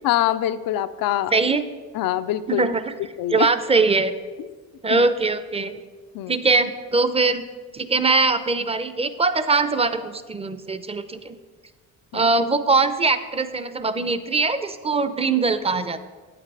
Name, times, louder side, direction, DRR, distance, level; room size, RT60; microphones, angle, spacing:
voice 1, 0.0-1.3 1.9-2.7 3.2-3.5 4.9-5.0 6.1-6.4 12.1-12.3, left 12 dB, 80° left, 12 dB, 0.6 m, -24 dB
voice 2, 1.3-1.6 2.5-2.8 3.3-4.1 4.8-5.7 6.3-7.4 7.7-11.4 12.1-16.1, right 3 dB, 15° right, 12 dB, 0.6 m, -21 dB
8.8 x 8.5 x 4.8 m, 1.4 s
cardioid pair, 85°, 34 cm